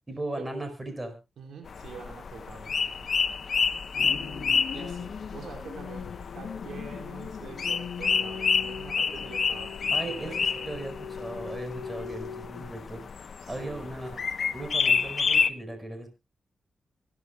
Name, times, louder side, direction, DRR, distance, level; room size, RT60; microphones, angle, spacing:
voice 1, 0.1-1.2 3.9-4.6 9.9-14.2 14.5-16.1, right 1 dB, 20° right, 7 dB, 4.8 m, -38 dB
voice 2, 1.4-3.1 4.7-10.8 13.4-13.8, right 4 dB, 80° right, 2 dB, 4.8 m, -44 dB
sound 1, 1.7-15.5, left 5 dB, 60° left, 1.0 m, -29 dB
sound 2, 4.0-12.9, left 7 dB, 75° left, 1.6 m, -40 dB
24.5 x 11.0 x 2.4 m, 0.27 s
cardioid pair, 65°, 0 cm